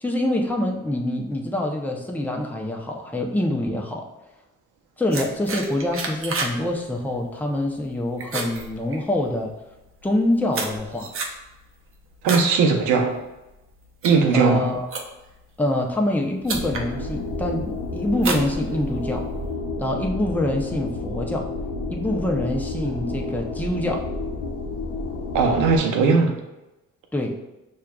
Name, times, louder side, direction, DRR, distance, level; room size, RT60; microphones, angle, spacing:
voice 1, 0.0-4.0 5.0-9.5 10.0-11.1 14.3-14.9 15.6-19.3 19.8-21.5 21.9-24.1 27.1-27.4, left 1 dB, 5° left, 0 dB, 0.6 m, -25 dB
sound 1, 5.1-6.6 6.9-7.2 7.6-7.9 8.2-9.4 10.0-12.5 12.9-13.3 13.8-15.4 16.1-16.2 16.5-16.9 17.4-17.7 18.2-19.2, right 3 dB, 45° right, 0.7 m, -30 dB
voice 2, 12.2-13.2 14.0-14.7 25.3-26.3, right 4 dB, 90° right, 3 dB, 0.7 m, -18 dB
sound 2, 16.4-25.8, left 3 dB, 70° left, 0.6 m, -30 dB
6.2 x 2.4 x 2.3 m, 1.0 s
cardioid pair, 90°, 30 cm